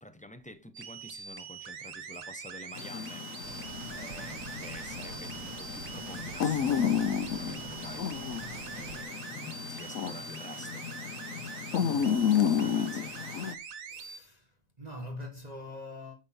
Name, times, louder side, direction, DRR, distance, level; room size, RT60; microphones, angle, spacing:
voice 1, 0.0-3.3 4.0-8.1 8.7-11.1 11.8-13.2, left 1 dB, 10° left, 0.5 m, -47 dB
sound 1, 0.7-14.2, right 6 dB, 85° right, 1.5 m, -44 dB
sound 2, 2.7-13.5, left 8 dB, 75° left, 1.2 m, -32 dB
sound 3, 3.4-9.0, right 11 dB, 65° right, 0.9 m, -47 dB
voice 2, 13.9-16.2, left 1 dB, 30° right, 1.6 m, -43 dB
9.6 x 6.7 x 4.2 m
omnidirectional pair, 1.4 m